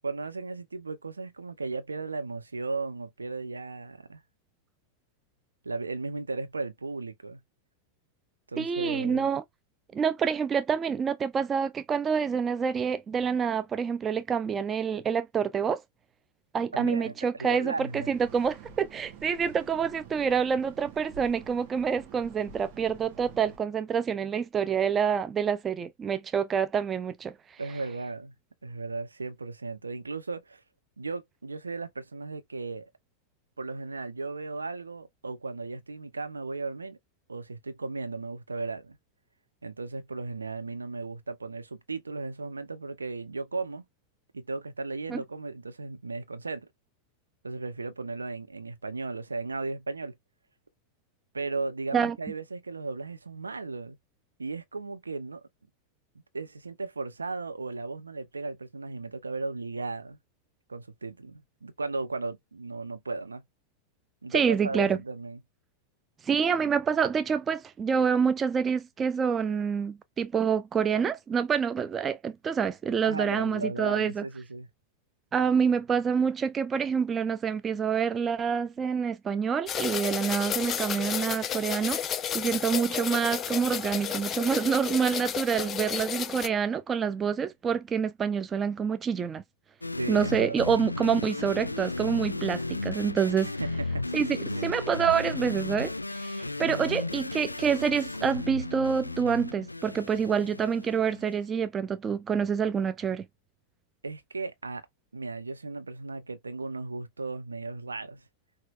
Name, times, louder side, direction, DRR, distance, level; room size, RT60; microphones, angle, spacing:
voice 1, 0.0-4.2 5.6-7.4 8.5-9.3 16.8-18.1 27.6-28.3 28.6-30.6 31.0-32.9 33.6-37.0 37.3-39.0 39.6-43.8 44.3-46.7 47.4-50.1 51.3-54.0 54.4-55.4 56.3-60.2 60.7-63.4 64.2-65.4 73.0-74.7 89.9-90.6 93.4-94.2 94.5-94.7 104.0-104.8 105.1-108.2, right 3 dB, 75° right, 0.9 m, -36 dB
voice 2, 8.6-9.4 9.9-15.8 16.5-27.3 45.1-45.2 51.9-52.2 64.3-65.0 66.2-74.2 75.3-89.4 90.1-93.5 94.1-94.3 94.6-103.3, right 6 dB, 20° right, 0.4 m, -27 dB
sound 1, 17.9-23.6, right 6 dB, 45° right, 1.4 m, -48 dB
sound 2, 79.7-86.5, left 9 dB, 25° left, 0.5 m, -32 dB
sound 3, 89.8-101.3, left 2 dB, 85° left, 0.3 m, -34 dB
5.9 x 2.9 x 2.5 m
figure-of-eight pair, 90°, 0 cm